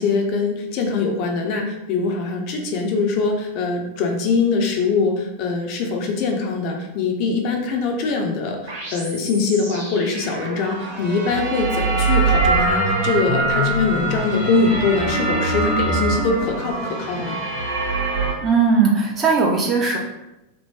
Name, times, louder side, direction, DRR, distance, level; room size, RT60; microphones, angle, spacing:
voice 1, 0.0-17.4, left 4 dB, 45° left, 2 dB, 0.6 m, -22 dB
sound 1, 8.7-18.3, right 2 dB, 55° right, 1.0 m, -23 dB
voice 2, 18.4-20.0, right 5 dB, 25° right, -1 dB, 0.6 m, -18 dB
2.9 x 2.2 x 3.5 m, 0.96 s
figure-of-eight pair, 90°, 0 cm